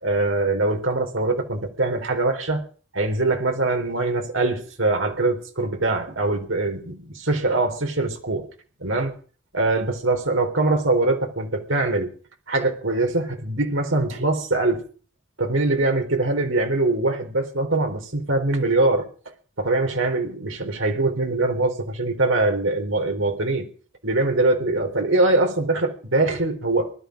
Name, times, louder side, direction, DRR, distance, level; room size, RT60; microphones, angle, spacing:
voice 1, 0.0-2.6 2.9-8.5 8.8-9.2 9.5-12.1 12.5-14.8 15.4-19.1 19.6-23.7 24.0-26.9, right 2 dB, 85° right, 3 dB, 3.9 m, -23 dB
19.5 x 12.0 x 5.2 m, 0.41 s
head